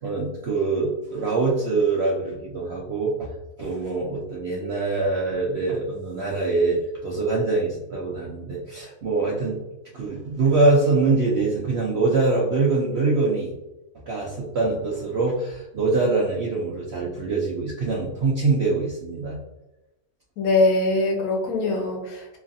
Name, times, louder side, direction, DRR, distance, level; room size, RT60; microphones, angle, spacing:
voice 1, 0.0-3.3 3.6-9.6 9.9-13.5 14.1-19.4, right 3 dB, 65° right, -4 dB, 0.6 m, -24 dB
voice 2, 20.4-22.4, left 2 dB, 70° left, 1 dB, 1.1 m, -22 dB
3.1 x 2.4 x 2.5 m, 0.98 s
omnidirectional pair, 1.7 m